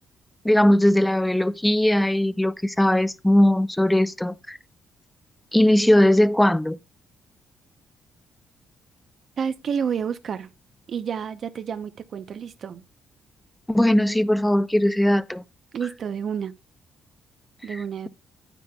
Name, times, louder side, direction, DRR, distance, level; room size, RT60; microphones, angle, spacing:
voice 1, 0.4-4.6 5.5-6.8 13.7-15.4 17.7-17.8, left 1 dB, 5° left, 0.5 m, -19 dB
voice 2, 9.4-10.5 10.9-12.8 15.7-16.5 17.6-18.1, right 7 dB, 55° right, 0.7 m, -29 dB
9.6 x 9.1 x 2.3 m
cardioid pair, 90°, 0 cm